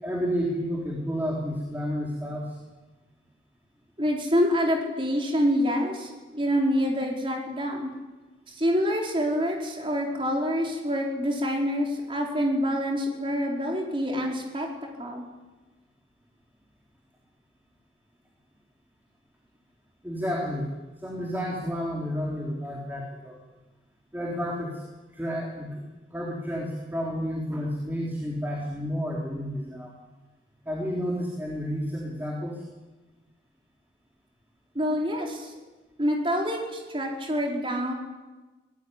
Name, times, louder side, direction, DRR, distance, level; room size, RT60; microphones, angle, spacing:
voice 1, 0.0-2.6 20.0-20.7 21.0-23.4 24.1-24.8 25.1-25.8 26.1-30.0 30.7-32.6, equal, 10° right, -2 dB, 3.8 m, -31 dB
voice 2, 4.0-7.9 8.5-14.7 15.0-15.2 34.7-35.5 36.0-37.9, equal, 25° right, 0 dB, 4.5 m, -26 dB
25.0 x 19.5 x 9.9 m, 1.2 s
head